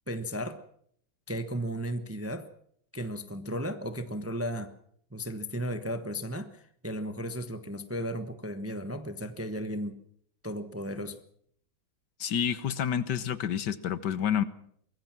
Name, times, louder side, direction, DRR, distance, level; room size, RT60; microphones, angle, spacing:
voice 1, 0.1-0.6 1.3-2.5 2.9-4.7 5.1-10.0 10.4-11.2, equal, 10° right, 0.8 m, -35 dB
voice 2, 12.2-14.4, left 9 dB, 65° left, 1.6 m, -29 dB
24.0 x 21.0 x 6.1 m
omnidirectional pair, 2.0 m